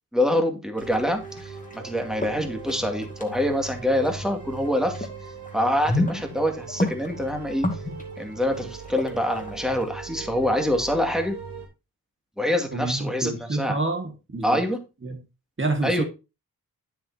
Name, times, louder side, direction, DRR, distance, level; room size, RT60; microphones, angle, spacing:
voice 1, 0.1-5.1 5.5-7.7 8.2-11.3 12.4-13.8 14.4-14.8 15.8-16.0, left 1 dB, ahead, 2.2 m, -25 dB
sound 1, 0.7-1.9 2.2-5.1 5.4-9.9, left 1 dB, 20° left, 2.1 m, -30 dB
sound 2, 0.8-11.7, right 5 dB, 75° right, 3.5 m, -40 dB
voice 2, 12.7-14.6 15.0-15.2 15.6-16.0, right 2 dB, 30° right, 1.8 m, -28 dB
8.8 x 7.9 x 2.7 m
cardioid pair, 60°, 38 cm